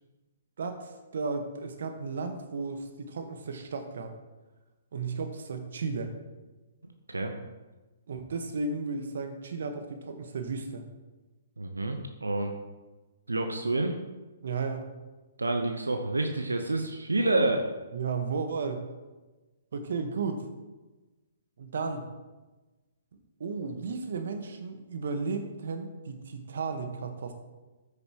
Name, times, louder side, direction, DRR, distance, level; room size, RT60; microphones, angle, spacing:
voice 1, 0.6-4.1 4.9-6.1 8.1-10.8 14.4-14.9 17.9-18.8 19.7-20.4 21.6-22.1 23.4-27.3, right 4 dB, 65° right, 7 dB, 1.2 m, -34 dB
voice 2, 11.6-12.5 13.3-13.9 15.4-17.6, right 2 dB, 85° right, 4 dB, 0.8 m, -28 dB
13.5 x 6.6 x 3.0 m, 1.2 s
figure-of-eight pair, 125°, 0 cm